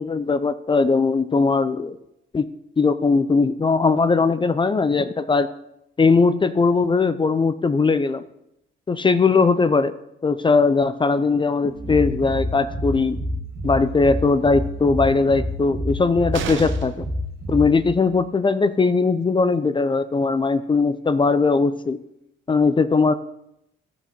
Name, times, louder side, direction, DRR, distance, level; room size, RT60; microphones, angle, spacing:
voice 1, 0.0-2.0 2.3-2.5 2.8-5.5 6.0-8.2 8.9-9.9 10.2-13.2 13.6-17.1 17.5-22.0 22.5-23.1, left 4 dB, 25° left, 12 dB, 0.5 m, -19 dB
sound 1, 11.7-18.2, equal, 50° right, 2.0 m, -29 dB
sound 2, 16.3-17.1 19.0-19.1 19.4-19.5, right 8 dB, 80° right, 0.9 m, -31 dB
14.0 x 4.9 x 5.2 m, 0.81 s
cardioid pair, 90°, 20 cm